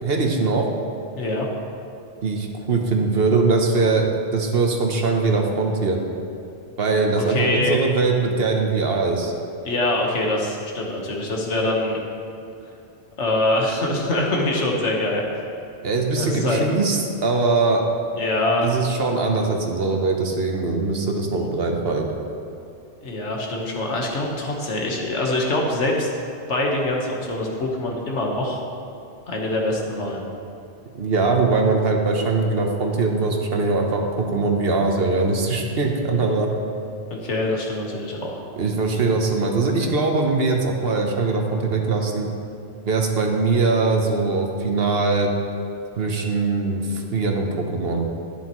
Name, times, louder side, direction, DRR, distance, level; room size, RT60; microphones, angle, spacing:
voice 1, 0.0-0.7 2.2-4.1 4.3-6.0 6.8-9.3 15.8-17.8 18.6-22.1 30.9-36.5 38.6-42.3 42.9-45.3 46.0-48.1, right 3 dB, 60° right, 2 dB, 1.1 m, -21 dB
voice 2, 7.2-7.8 9.6-12.0 13.2-15.2 16.2-16.6 18.2-18.7 23.0-26.1 26.5-28.6 29.3-30.2 37.1-38.4, left 2 dB, 80° left, -1 dB, 1.6 m, -24 dB
11.5 x 9.8 x 3.1 m, 2.7 s
omnidirectional pair, 1.2 m